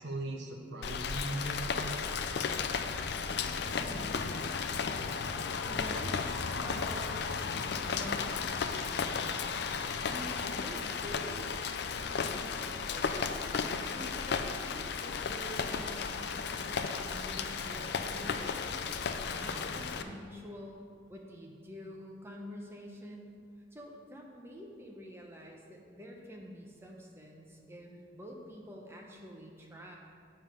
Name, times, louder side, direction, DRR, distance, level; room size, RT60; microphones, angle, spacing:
voice 1, 0.0-1.9 19.8-20.1, right 1 dB, 65° right, 2 dB, 0.8 m, -39 dB
Rain, 0.8-20.0, left 5 dB, 60° left, 0.4 m, -34 dB
voice 2, 3.7-4.4 5.7-7.2 7.8-8.6 10.0-11.5 12.1-13.2 13.6-18.7 19.4-23.4 23.7-30.0, equal, 15° right, -1 dB, 0.9 m, -47 dB
7.1 x 5.5 x 5.6 m, 2.3 s
head